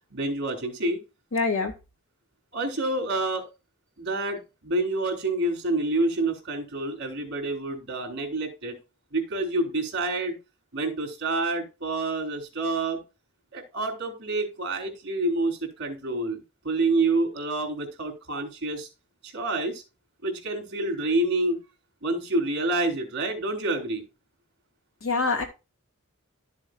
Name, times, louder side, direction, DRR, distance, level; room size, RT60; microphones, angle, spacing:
voice 1, 0.1-1.0 2.5-3.4 4.0-8.8 9.1-10.4 10.7-13.0 13.5-18.9 19.2-19.8 20.2-21.6 22.0-24.0, right 2 dB, 55° right, 3.8 m, -28 dB
voice 2, 1.3-1.7 25.0-25.4, left 4 dB, 70° left, 2.8 m, -25 dB
13.0 x 7.4 x 2.5 m
head